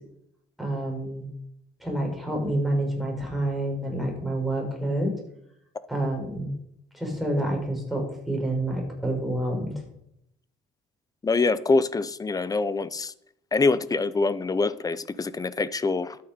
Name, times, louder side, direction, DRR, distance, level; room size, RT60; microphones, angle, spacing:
voice 1, 0.6-1.3 1.8-5.1 5.9-6.5 6.9-9.8, right 1 dB, ahead, 0 dB, 5.0 m, -28 dB
voice 2, 11.2-13.1 13.5-16.2, left 3 dB, 20° left, 15 dB, 0.7 m, -25 dB
12.5 x 8.9 x 5.2 m, 0.76 s
cardioid pair, 110°, 17 cm